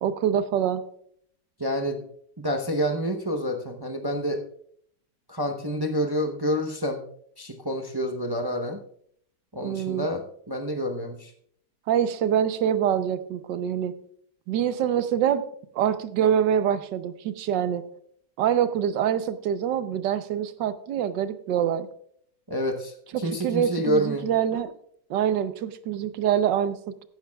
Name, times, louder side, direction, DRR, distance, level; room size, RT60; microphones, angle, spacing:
voice 1, 0.0-0.8 9.6-10.1 11.9-13.9 14.5-15.4 15.7-17.8 18.4-21.9 23.1-24.7 25.1-27.1, right 9 dB, 85° right, 12 dB, 1.4 m, -25 dB
voice 2, 1.6-2.0 2.4-4.4 5.3-7.0 7.4-8.8 9.5-11.3 22.5-24.3, equal, 30° right, 5 dB, 0.4 m, -28 dB
15.5 x 11.5 x 2.3 m, 0.65 s
omnidirectional pair, 1.9 m